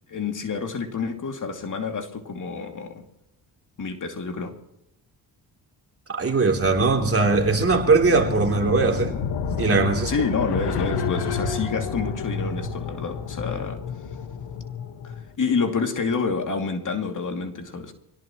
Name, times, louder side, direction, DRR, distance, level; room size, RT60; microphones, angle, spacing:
voice 1, 0.1-3.0 3.8-4.6 10.1-13.8 15.0-17.9, left 5 dB, 50° left, 4 dB, 2.7 m, -28 dB
voice 2, 6.1-9.1 9.6-10.1, right 4 dB, 35° right, 1 dB, 3.3 m, -20 dB
sound 1, 6.5-15.3, left 5 dB, 75° left, 1.6 m, -30 dB
25.0 x 17.5 x 3.1 m, 0.83 s
cardioid pair, 85°, 41 cm